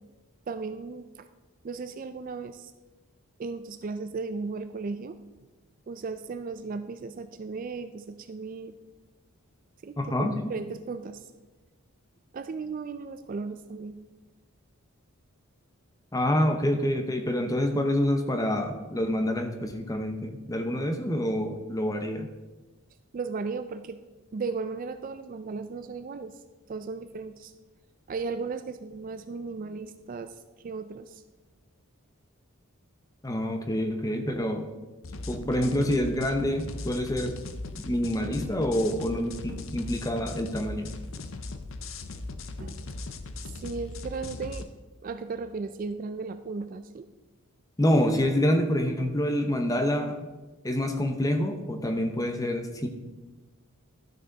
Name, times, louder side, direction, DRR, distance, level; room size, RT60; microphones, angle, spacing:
voice 1, 0.5-1.3 1.6-2.7 3.4-5.2 5.9-8.8 9.8-11.3 12.3-14.0 23.1-24.0 24.3-26.4 26.7-27.5 28.1-31.2 42.6-42.8 43.5-44.7 45.0-47.1, right 4 dB, 40° right, 10 dB, 0.3 m, -36 dB
voice 2, 10.0-10.3 16.1-22.3 33.2-34.7 35.3-37.4 37.8-40.9 47.8-50.1 50.6-52.9, left 1 dB, 15° left, 5 dB, 0.7 m, -27 dB
sound 1, 35.0-44.6, left 2 dB, 60° left, 0.6 m, -39 dB
12.0 x 6.2 x 3.9 m, 1.2 s
head